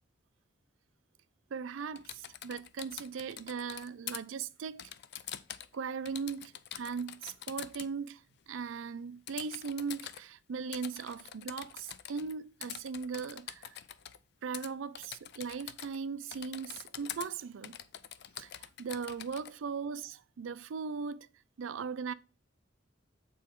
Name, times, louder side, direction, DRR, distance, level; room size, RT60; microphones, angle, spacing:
voice 1, 1.5-4.8 5.7-13.8 14.4-17.8 18.4-21.3 21.6-22.1, right 5 dB, 85° right, 0.4 m, -39 dB
Typing, 2.0-4.2 4.8-5.8 6.1-7.9 9.3-10.2 10.7-12.3 12.6-14.2 14.5-14.7 14.9-16.0 16.3-17.3 17.6-19.5, left 11 dB, 60° left, 0.4 m, -45 dB
7.6 x 4.1 x 3.6 m
head